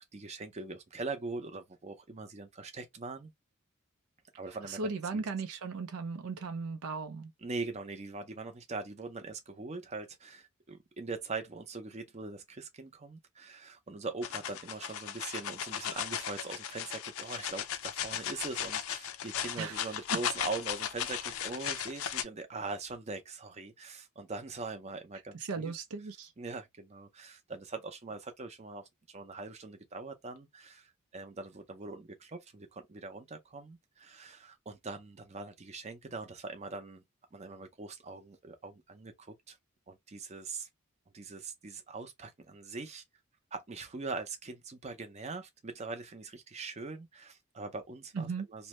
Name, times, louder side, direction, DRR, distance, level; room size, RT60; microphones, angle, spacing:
voice 1, 0.0-3.3 4.4-5.2 7.4-25.7 26.4-37.0 37.3-39.6 39.9-40.7 41.1-43.0 43.5-48.7, right 3 dB, 30° right, 0.5 m, -42 dB
voice 2, 4.6-7.3 19.6-19.8 20.1-20.2 25.3-26.3 48.1-48.5, right 4 dB, 90° right, 0.5 m, -37 dB
sound 1, 14.2-22.2, left 9 dB, 70° left, 0.4 m, -36 dB
2.6 x 2.1 x 2.9 m
head